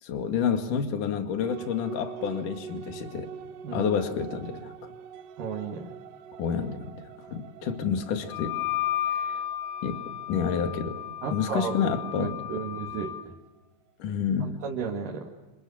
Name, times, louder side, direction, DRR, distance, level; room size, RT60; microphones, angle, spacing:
voice 1, 0.0-3.3 3.7-4.9 6.4-8.6 9.1-9.4 9.8-11.0 11.3-12.4 14.0-14.6, left 7 dB, 55° left, 6 dB, 3.5 m, -29 dB
sound 1, 1.4-13.3, right 7 dB, 90° right, 3.2 m, -45 dB
voice 2, 5.4-5.9 11.2-13.1 14.4-15.3, right 6 dB, 60° right, 0 dB, 3.5 m, -33 dB
Wind instrument woodwind instrument, 8.3-13.3, left 11 dB, 85° left, 4.0 m, -33 dB
29.0 x 28.5 x 7.3 m, 1.2 s
omnidirectional pair, 4.8 m